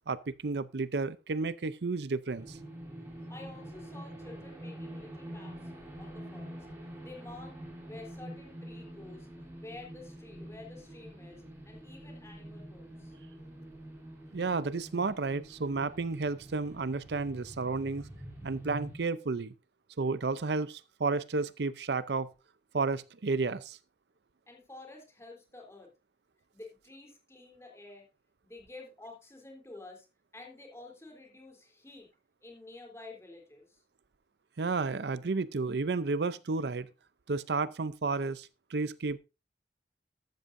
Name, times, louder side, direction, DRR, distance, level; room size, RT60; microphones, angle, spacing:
voice 1, 0.1-2.6 14.3-18.1 18.4-19.5 20.0-22.3 22.7-23.8 34.6-36.9 37.3-39.2, right 3 dB, 75° right, 0.6 m, -32 dB
sound 1, 2.3-19.0, right 1 dB, 15° right, 3.4 m, -46 dB
voice 2, 3.3-5.7 6.0-6.7 7.0-7.6 7.9-9.3 9.6-13.1 24.5-25.9 26.5-28.1 28.4-30.1 30.3-32.1 32.4-33.8, left 2 dB, 15° left, 3.6 m, -50 dB
13.5 x 13.0 x 2.6 m
head